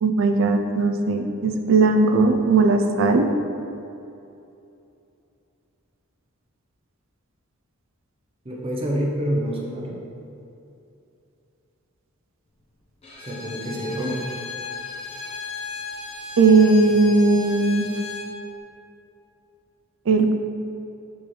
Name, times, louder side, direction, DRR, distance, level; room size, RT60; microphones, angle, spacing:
voice 1, 0.0-3.3 16.4-17.9 20.1-20.3, right 3 dB, 65° right, 5 dB, 0.4 m, -18 dB
voice 2, 8.4-10.0 13.2-14.3, equal, 25° right, -3 dB, 0.7 m, -27 dB
Bowed string instrument, 13.0-18.3, left 4 dB, 30° left, 1.0 m, -35 dB
6.1 x 4.9 x 3.2 m, 2.7 s
head